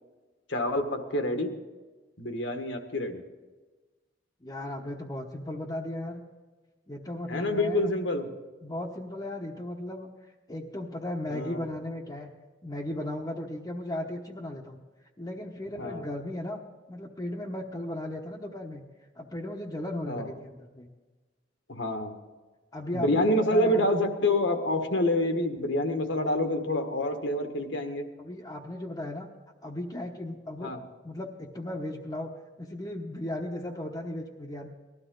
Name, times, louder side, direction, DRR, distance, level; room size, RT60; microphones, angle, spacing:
voice 1, 0.5-1.5 2.2-3.2 7.3-8.3 11.3-11.6 15.8-16.1 20.1-20.3 21.7-22.1 22.9-28.1 30.6-30.8, left 1 dB, 70° left, 5 dB, 1.6 m, -27 dB
voice 2, 4.4-6.2 6.9-7.9 8.6-10.1 10.5-12.3 12.6-14.8 15.2-16.6 16.9-18.8 19.1-20.9 22.7-23.9 28.2-29.3 29.6-30.7 31.0-32.3 32.6-34.7, left 1 dB, 20° left, -3 dB, 1.0 m, -36 dB
19.5 x 13.0 x 3.9 m, 1.3 s
head